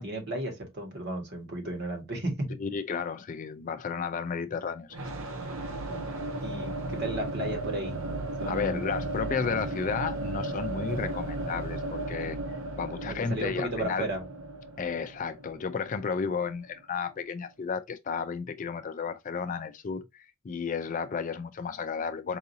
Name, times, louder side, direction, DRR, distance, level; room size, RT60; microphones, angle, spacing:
voice 1, 0.0-2.6 6.4-8.0 8.4-8.9 13.3-14.2, right 1 dB, 50° right, 1.6 m, -34 dB
voice 2, 2.6-5.0 8.5-12.4 12.8-14.1 14.8-22.4, left 5 dB, 40° left, 0.4 m, -33 dB
sound 1, 4.9-16.7, right 2 dB, 70° right, 0.7 m, -35 dB
4.7 x 2.7 x 2.7 m
head